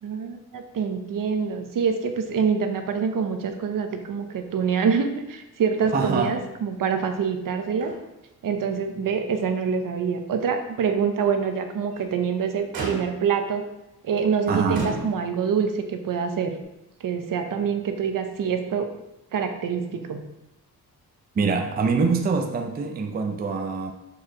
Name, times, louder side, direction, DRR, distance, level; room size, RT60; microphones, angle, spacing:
voice 1, 0.0-7.9 8.4-13.6 14.0-16.5 17.0-18.9 19.3-20.2, right 6 dB, 60° right, 6 dB, 0.8 m, -25 dB
Motor vehicle (road), 5.8-6.4 6.7-6.8 7.3-8.3 8.7-8.8 9.4-9.5 11.7-12.2 12.7-13.4 14.2-14.3 14.7-15.5 16.6-16.7, right 3 dB, 85° right, 2.3 m, -35 dB
voice 2, 5.9-6.4 14.5-14.8 21.4-23.9, right 4 dB, 25° right, 4 dB, 0.4 m, -24 dB
6.7 x 4.6 x 3.7 m, 0.92 s
wide cardioid pair, 140°, 37 cm